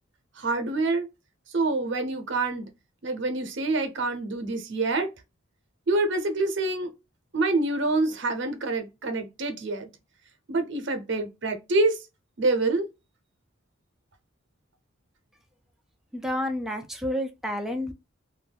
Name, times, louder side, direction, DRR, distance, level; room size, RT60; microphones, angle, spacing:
voice 1, 0.4-1.1 1.5-2.7 3.0-5.1 5.9-6.9 7.3-9.9 10.5-12.0 12.4-12.8, right 2 dB, 60° right, 0.6 m, -26 dB
voice 2, 16.1-17.9, left 1 dB, ahead, 0.3 m, -30 dB
2.5 x 2.2 x 3.3 m
head